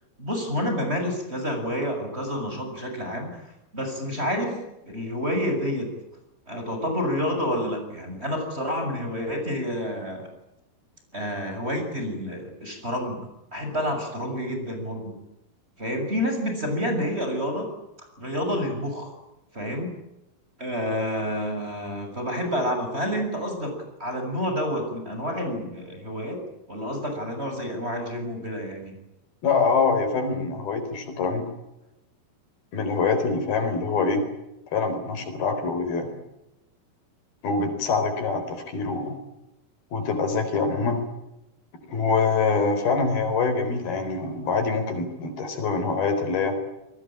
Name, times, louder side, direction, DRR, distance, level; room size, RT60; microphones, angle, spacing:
voice 1, 0.2-3.5 3.7-4.6 4.8-5.9 6.5-10.3 11.1-13.3 13.5-15.2 15.8-17.7 18.2-19.1 19.5-19.9 20.6-26.4 26.7-29.0, equal, 15° right, 4 dB, 6.9 m, -29 dB
voice 2, 29.4-31.5 32.7-34.2 34.7-36.1 37.4-39.2 39.9-41.0 41.9-46.6, left 4 dB, 75° left, 7 dB, 6.1 m, -25 dB
28.5 x 21.0 x 8.9 m, 0.91 s
omnidirectional pair, 4.3 m